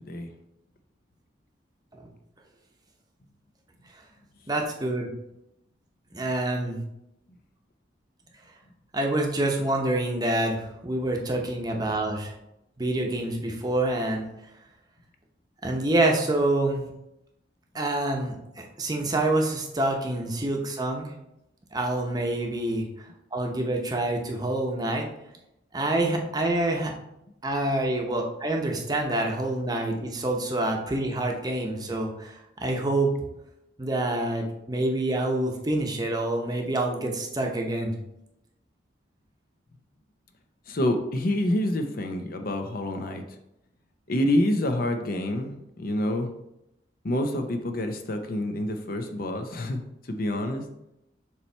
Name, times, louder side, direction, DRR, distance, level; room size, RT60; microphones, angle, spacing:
voice 1, 4.5-5.1 6.1-6.8 8.9-12.3 12.8-14.3 15.6-16.9 17.7-21.1 21.7-22.9 23.3-25.1 25.7-26.9 27.4-32.3 32.6-33.1 33.8-37.9, right 2 dB, 20° right, 1 dB, 0.8 m, -27 dB
voice 2, 40.7-43.2 44.1-46.3 47.0-49.8 50.1-50.6, left 1 dB, 50° left, 6 dB, 0.6 m, -27 dB
7.0 x 3.1 x 4.4 m, 0.85 s
head